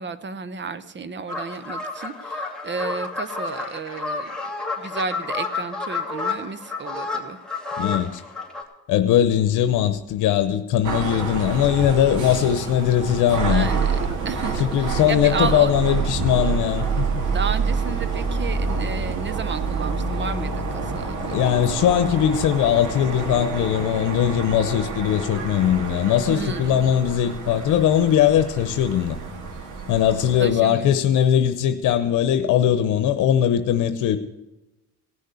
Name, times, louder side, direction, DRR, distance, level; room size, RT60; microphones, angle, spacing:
voice 1, 0.0-4.3 4.8-7.4 13.5-14.0 14.2-15.7 17.3-21.6 26.3-26.8 30.4-30.9, right 5 dB, 40° right, 1.0 m, -32 dB
sound 1, 1.3-8.6, left 3 dB, ahead, 3.0 m, -30 dB
voice 2, 7.8-8.2 8.9-13.7 14.5-17.1 21.2-29.2 29.9-34.2, left 10 dB, 90° left, 0.9 m, -20 dB
sound 2, 10.8-30.5, right 5 dB, 75° right, 2.7 m, -28 dB
17.5 x 6.6 x 8.2 m
cardioid pair, 90°, 30 cm